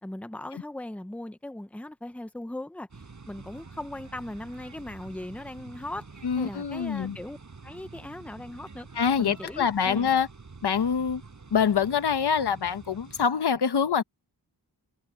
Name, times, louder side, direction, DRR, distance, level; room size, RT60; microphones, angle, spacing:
voice 1, 0.0-6.1 6.4-7.4 7.6-8.9 9.2-10.1, left 1 dB, 5° left, 0.9 m, -39 dB
sound 1, 2.9-13.3, right 4 dB, 45° right, 6.8 m, -47 dB
voice 2, 6.2-7.2 8.9-10.3 10.6-11.2 11.5-14.0, left 7 dB, 75° left, 1.2 m, -25 dB
wide cardioid pair, 105°, 40 cm